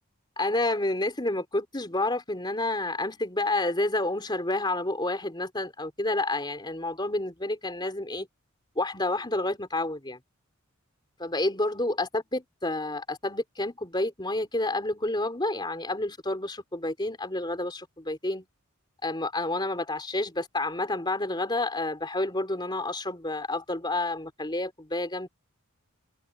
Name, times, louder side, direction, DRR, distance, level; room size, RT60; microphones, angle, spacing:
voice 1, 0.4-8.3 8.8-10.2 11.2-18.5 19.0-25.3, left 2 dB, 20° left, 3.7 m, -29 dB
head